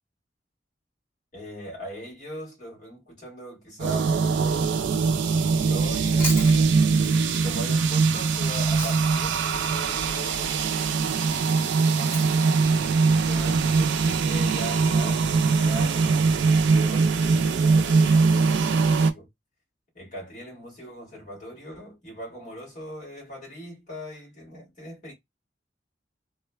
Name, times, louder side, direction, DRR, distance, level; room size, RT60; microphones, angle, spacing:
voice 1, 1.3-4.8 5.5-6.7 7.4-12.6 13.2-19.3 19.9-25.1, left 1 dB, 45° left, 1.6 m, -40 dB
sound 1, 3.8-19.1, right 4 dB, 75° right, 0.3 m, -22 dB
Chewing mastication, 5.8-9.3 9.6-13.9, left 1 dB, 15° left, 1.0 m, -39 dB
2.9 x 2.1 x 2.2 m
head